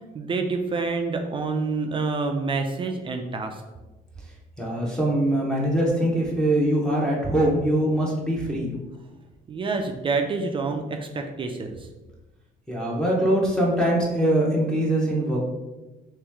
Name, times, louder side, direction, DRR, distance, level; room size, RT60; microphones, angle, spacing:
voice 1, 0.1-3.6 9.5-11.9, right 4 dB, 30° right, 4 dB, 0.3 m, -27 dB
voice 2, 4.6-8.7 12.7-15.4, right 1 dB, 5° left, -5 dB, 0.8 m, -22 dB
3.1 x 3.0 x 3.4 m, 1.1 s
cardioid pair, 110°, 17 cm